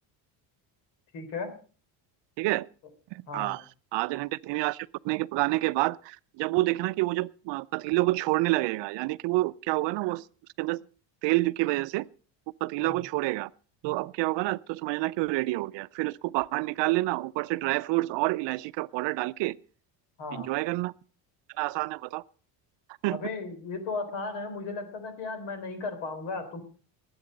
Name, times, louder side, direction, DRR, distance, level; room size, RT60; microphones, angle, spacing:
voice 1, 1.1-1.6 3.3-3.6 12.8-13.0 20.2-20.5 23.1-26.6, left 3 dB, 70° left, 3.6 m, -35 dB
voice 2, 3.1-3.6 3.9-10.2 10.6-10.8 11.2-12.1 12.6-13.5 13.8-19.6 20.3-20.9 21.6-22.2 23.0-23.2, right 20 dB, 65° right, 0.6 m, -28 dB
20.0 x 8.8 x 5.2 m
cardioid pair, 130°, 46 cm